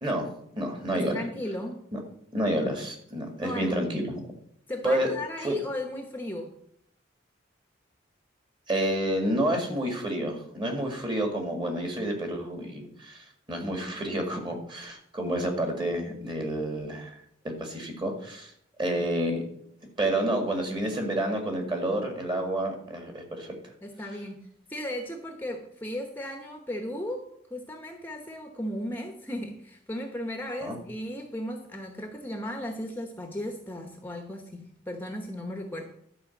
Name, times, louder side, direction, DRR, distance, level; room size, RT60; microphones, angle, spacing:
voice 1, 0.0-1.2 1.9-2.0 2.3-4.2 4.8-5.1 5.4-5.6 8.7-17.2 17.4-18.5 18.8-19.5 20.0-23.5 30.6-30.8, right 1 dB, 25° right, 2 dB, 2.1 m, -29 dB
voice 2, 0.9-1.8 3.4-3.8 4.7-6.5 14.0-14.1 23.8-24.4 24.7-27.2 27.5-35.8, left 1 dB, 10° left, 3 dB, 1.0 m, -36 dB
12.0 x 4.9 x 7.2 m, 0.70 s
head